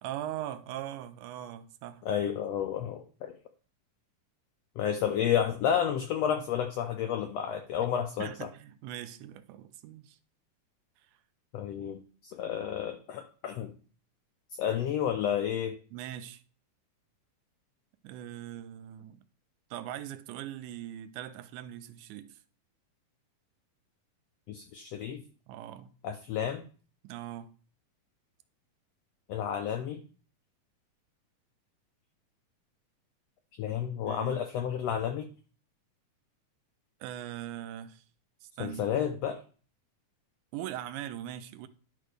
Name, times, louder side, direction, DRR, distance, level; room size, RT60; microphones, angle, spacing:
voice 1, 0.0-2.0 8.2-10.2 15.9-16.4 18.0-19.2 19.7-22.4 25.5-25.9 27.0-27.5 34.0-34.4 37.0-38.0 38.4-38.9 40.5-41.7, right 12 dB, 80° right, 2.0 m, -41 dB
voice 2, 2.0-3.3 4.8-8.3 11.5-12.0 12.2-13.7 14.6-15.8 24.5-25.2 26.0-26.6 29.3-30.0 33.6-35.3 38.6-39.4, left 9 dB, 80° left, 1.4 m, -31 dB
11.0 x 4.9 x 3.3 m
omnidirectional pair, 3.6 m